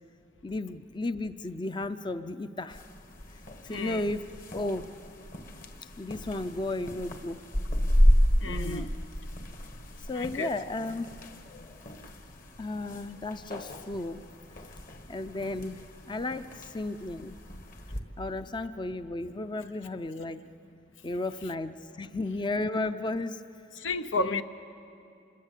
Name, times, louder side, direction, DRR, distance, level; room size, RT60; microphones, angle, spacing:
voice 1, 0.4-2.8 3.3-4.2 4.5-4.9 6.0-7.4 8.4-8.9 10.1-11.1 11.4-11.8 12.6-14.3 15.1-17.4 18.2-20.4 21.0-23.4 24.2-24.4, left 2 dB, 25° left, 11 dB, 0.5 m, -34 dB
sound 1, 2.7-18.0, equal, 45° left, 1.7 m, -31 dB
voice 2, 3.7-4.1 8.4-8.9 10.1-10.5 23.7-24.4, left 3 dB, 85° left, 10 dB, 0.9 m, -32 dB
26.5 x 21.5 x 8.3 m, 2.6 s
head